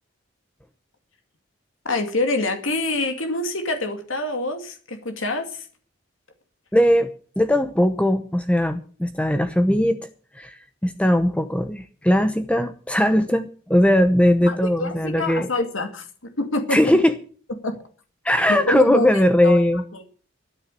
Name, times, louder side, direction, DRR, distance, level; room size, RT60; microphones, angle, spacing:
voice 1, 1.8-5.6 14.5-16.1 16.4-16.8 17.6-17.7 18.5-19.1 19.4-19.6 19.9-20.1, left 2 dB, 85° left, 6 dB, 2.3 m, -26 dB
voice 2, 6.7-7.1 7.4-10.1 10.3-15.5 16.7-17.1 18.2-19.8, left 1 dB, 5° left, 9 dB, 0.8 m, -19 dB
12.5 x 9.8 x 7.6 m, 0.42 s
head